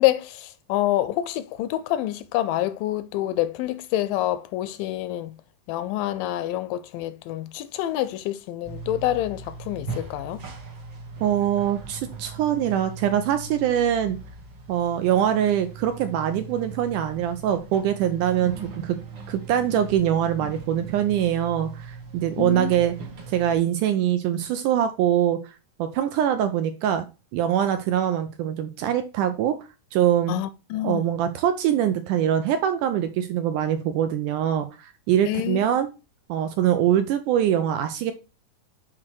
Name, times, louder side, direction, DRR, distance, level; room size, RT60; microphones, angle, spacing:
voice 1, 0.0-5.3 5.7-10.4 22.4-22.7 30.3-31.0 35.3-35.6, left 14 dB, 80° left, 2.1 m, -27 dB
sound 1, 8.6-23.6, right 4 dB, 45° right, 1.6 m, -39 dB
voice 2, 11.2-14.2 14.7-19.0 19.3-22.9 23.3-25.4 25.8-27.1 27.3-29.6 29.9-30.4 30.8-35.9 36.3-38.1, right 10 dB, 80° right, 1.9 m, -23 dB
7.5 x 4.0 x 4.6 m
omnidirectional pair, 4.1 m